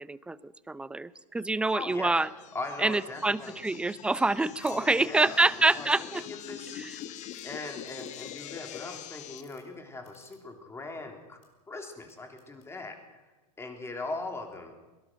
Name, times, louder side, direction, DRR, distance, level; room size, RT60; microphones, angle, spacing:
voice 1, 0.0-2.3 2.8-6.2 6.8-6.9, right 2 dB, 5° right, 18 dB, 0.5 m, -26 dB
sound 1, 1.7-9.4, left 11 dB, 35° left, 1.3 m, -44 dB
voice 2, 1.7-2.2 2.5-3.6 4.6-5.4 5.7-6.8 7.4-11.4 11.7-13.2 13.6-14.7, left 2 dB, 15° left, 4 dB, 3.6 m, -40 dB
sound 2, 4.6-4.8 5.2-6.1 6.6-6.7 6.9-7.4 7.9-8.6 9.2-9.6 10.0-10.8 11.2-11.5 12.0-12.7, left 8 dB, 55° left, 6.0 m, -60 dB
23.0 x 18.5 x 6.4 m, 1.2 s
hypercardioid pair, 120°, 20 cm